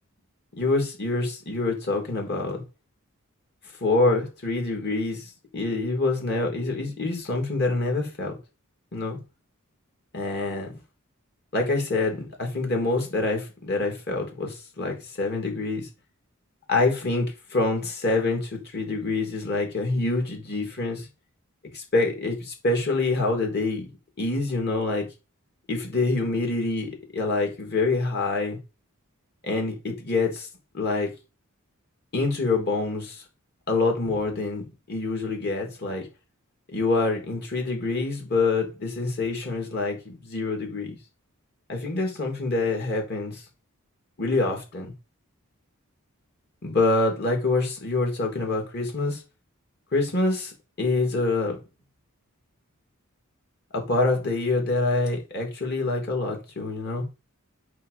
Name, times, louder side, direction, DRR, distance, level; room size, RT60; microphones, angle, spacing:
voice 1, 0.6-2.6 3.8-8.3 8.9-9.2 10.1-10.8 11.5-15.9 16.7-21.1 21.7-23.9 24.2-25.1 25.7-28.6 29.4-30.5 30.7-31.1 32.1-33.2 33.7-36.1 36.7-41.0 41.7-43.4 44.2-44.9 46.6-49.2 49.9-51.6 53.7-57.0, left 3 dB, 50° left, 3.0 m, -26 dB
8.2 x 4.0 x 6.8 m
head